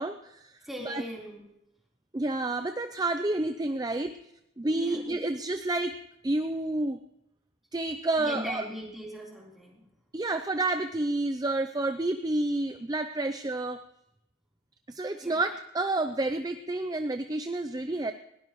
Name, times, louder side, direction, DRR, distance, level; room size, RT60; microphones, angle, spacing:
voice 1, 0.0-0.6 0.8-1.0 2.1-4.2 4.6-5.9 6.2-7.0 7.7-8.6 10.1-13.8 14.9-18.1, right 2 dB, 20° right, 8 dB, 0.5 m, -29 dB
voice 2, 0.6-1.5 4.8-5.0 8.2-9.9 15.2-15.4, equal, ahead, -4 dB, 3.8 m, -40 dB
20.0 x 17.5 x 3.1 m, 0.82 s
head